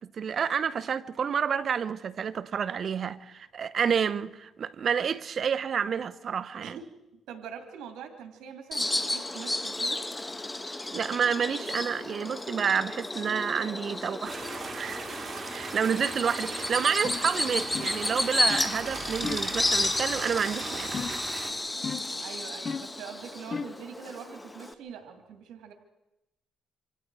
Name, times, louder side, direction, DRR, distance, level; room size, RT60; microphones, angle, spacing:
voice 1, 0.1-6.8 10.9-14.4 14.7-15.1 15.5-21.0, right 7 dB, 50° right, 0.8 m, -29 dB
voice 2, 7.3-10.0 22.2-25.7, right 7 dB, 85° right, 2.3 m, -43 dB
Bird vocalization bird call bird song, 8.7-24.7, left 2 dB, 15° left, 1.3 m, -32 dB
sound 1, 14.3-21.5, right 4 dB, 35° right, 3.1 m, -38 dB
sound 2, 17.0-17.3 17.7-18.1 18.5-18.8 19.2-19.6 20.9-21.3 21.8-22.2 22.6-23.0 23.5-23.8, left 5 dB, 40° left, 0.8 m, -35 dB
27.5 x 25.5 x 4.7 m
cardioid pair, 95°, 0 cm